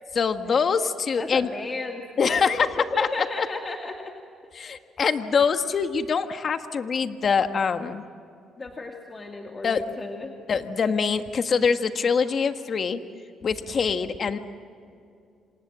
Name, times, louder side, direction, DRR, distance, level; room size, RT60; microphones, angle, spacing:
voice 1, 0.1-1.5 2.2-2.7 3.0-3.1 3.4-3.5 4.5-8.0 9.6-9.8 10.5-13.0 13.4-14.4, left 5 dB, 50° left, 8 dB, 1.5 m, -24 dB
voice 2, 1.2-4.2 4.7-4.8 8.6-10.3, left 3 dB, 30° left, 2 dB, 2.3 m, -34 dB
27.5 x 26.5 x 7.5 m, 2.4 s
cardioid pair, 90°, 0 cm